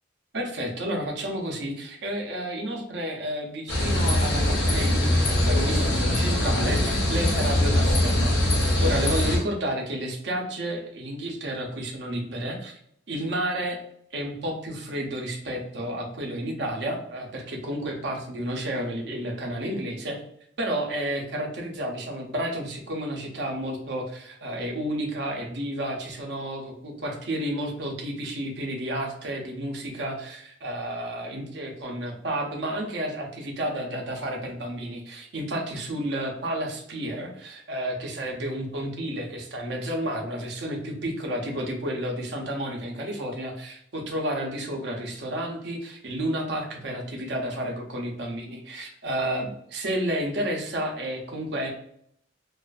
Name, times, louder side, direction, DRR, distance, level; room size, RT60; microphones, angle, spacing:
voice 1, 0.3-12.8 13.1-13.8 14.1-20.2 20.6-51.7, right 1 dB, 65° right, 1 dB, 0.6 m, -31 dB
sound 1, 3.7-9.4, left 1 dB, 85° left, 1.0 m, -22 dB
2.4 x 2.4 x 2.3 m, 0.68 s
head